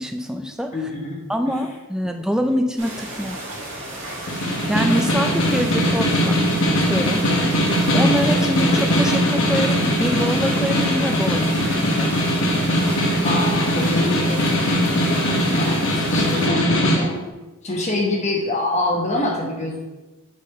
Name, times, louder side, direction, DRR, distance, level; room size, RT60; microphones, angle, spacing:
voice 1, 0.0-0.9 1.3-3.4 4.3-6.4 6.8-7.2 7.9-12.2, equal, 5° right, 5 dB, 0.3 m, -25 dB
voice 2, 0.7-1.2 13.2-14.6 15.5-17.3 17.6-19.8, left 2 dB, 30° left, -1 dB, 1.0 m, -25 dB
sound 1, 2.8-16.5, right 1 dB, 55° right, 2.0 m, -33 dB
Snare drum, 4.3-17.0, equal, 60° left, 1.3 m, -20 dB
6.2 x 4.1 x 5.5 m, 1.1 s
head